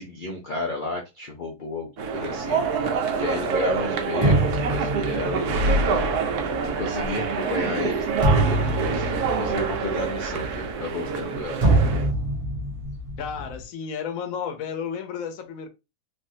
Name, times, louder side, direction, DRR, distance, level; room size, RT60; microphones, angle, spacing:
voice 1, 0.0-2.6 3.1-6.3 6.6-11.6, left 2 dB, 90° left, 0.4 m, -32 dB
sound 1, 2.0-12.1, right 4 dB, 75° right, 1.1 m, -26 dB
sound 2, 4.2-11.3 11.6-13.6, right 2 dB, 35° right, 0.6 m, -25 dB
voice 2, 13.2-15.7, left 7 dB, 65° left, 1.0 m, -32 dB
3.4 x 2.5 x 2.6 m
omnidirectional pair, 1.7 m